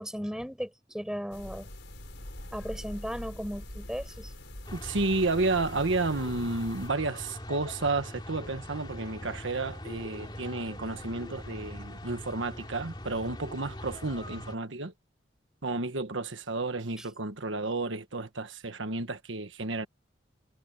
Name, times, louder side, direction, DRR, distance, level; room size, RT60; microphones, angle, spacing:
voice 1, 0.0-1.7 2.5-4.3 17.0-17.1, equal, 5° right, 4.9 m, -36 dB
sound 1, 1.3-6.9, left 1 dB, 70° left, 4.8 m, -44 dB
sound 2, 4.6-14.5, left 1 dB, 25° left, 2.8 m, -42 dB
voice 2, 4.7-14.9 15.6-19.9, right 3 dB, 80° right, 1.4 m, -31 dB
head